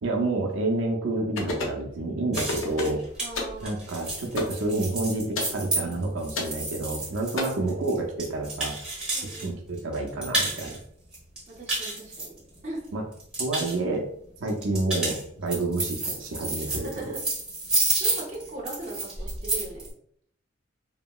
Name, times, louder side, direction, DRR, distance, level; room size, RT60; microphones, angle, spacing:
voice 1, 0.0-3.0 3.6-8.8 9.4-10.8 12.9-13.0 13.4-14.1 14.4-16.9, right 2 dB, 85° right, 1 dB, 0.5 m, -29 dB
sound 1, 1.4-1.8 2.4-3.0 3.4-3.6 4.4-4.6 5.4-5.6 6.4-6.6 7.4-7.5, left 3 dB, 90° left, 0.6 m, -30 dB
sound 2, 2.3-9.4 9.8-10.8 11.1-12.8 13.1-13.7 14.5-19.9, right 2 dB, 5° right, 1.0 m, -30 dB
voice 2, 3.2-3.8 7.3-7.8 9.1-9.5 11.5-12.3 12.6-12.8 16.6-17.2 18.0-19.9, right 2 dB, 35° right, -2 dB, 0.7 m, -39 dB
2.8 x 2.7 x 2.2 m, 0.66 s
head